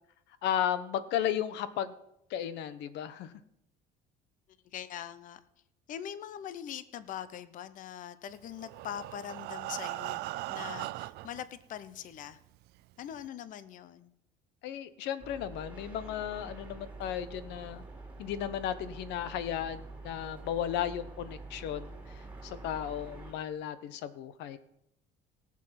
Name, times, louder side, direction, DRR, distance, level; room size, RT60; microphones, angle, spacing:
voice 1, 0.4-1.9 2.3-3.3 14.6-17.8 18.2-24.6, left 10 dB, 75° left, 14 dB, 1.0 m, -34 dB
voice 2, 4.7-5.4 5.9-10.2 10.5-12.4 13.0-14.1, left 10 dB, 45° left, 15 dB, 0.7 m, -42 dB
Breathing, 8.5-11.4 12.2-12.3 12.7-12.8 13.2-13.3, right 18 dB, 65° right, 0.4 m, -39 dB
sound 1, 15.2-23.3, right 3 dB, 5° right, 2.9 m, -46 dB
17.5 x 7.6 x 5.8 m, 0.79 s
cardioid pair, 150°, 18 cm